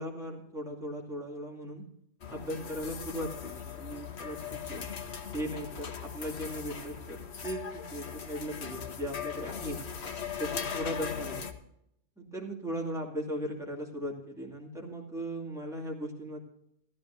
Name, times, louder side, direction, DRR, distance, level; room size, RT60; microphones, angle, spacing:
voice 1, 0.0-1.8 2.3-4.8 5.3-9.8 10.4-11.5 12.2-16.4, equal, ahead, -2 dB, 2.4 m, -38 dB
sound 1, 2.2-11.5, left 7 dB, 50° left, 1.2 m, -39 dB
15.5 x 14.0 x 2.6 m, 0.76 s
omnidirectional pair, 1.4 m